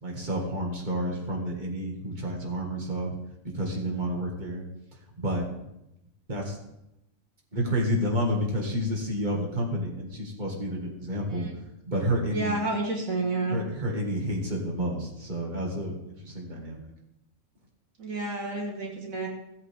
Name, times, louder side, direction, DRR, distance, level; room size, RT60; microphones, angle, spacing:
voice 1, 0.0-3.1 3.5-4.6 5.1-5.5 6.3-6.6 7.5-11.5 11.9-12.6 13.5-15.9 16.2-16.8, equal, 35° right, -1 dB, 2.2 m, -30 dB
voice 2, 12.3-13.6 18.0-19.3, right 2 dB, 75° right, 0 dB, 2.0 m, -30 dB
17.0 x 8.1 x 3.6 m, 0.88 s
omnidirectional pair, 1.4 m